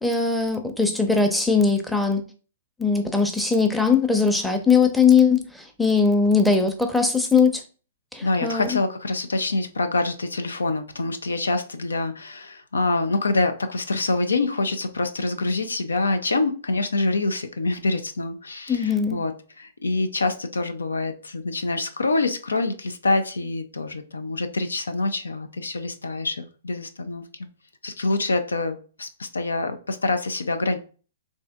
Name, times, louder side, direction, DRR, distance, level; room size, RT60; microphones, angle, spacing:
voice 1, 0.0-2.2 2.8-7.6 8.1-8.8 18.7-19.2, left 5 dB, ahead, 0.6 m, -20 dB
voice 2, 8.2-27.2 27.8-30.8, left 3 dB, 85° left, 0.5 m, -26 dB
3.4 x 2.7 x 3.4 m
hypercardioid pair, 120°, 0 cm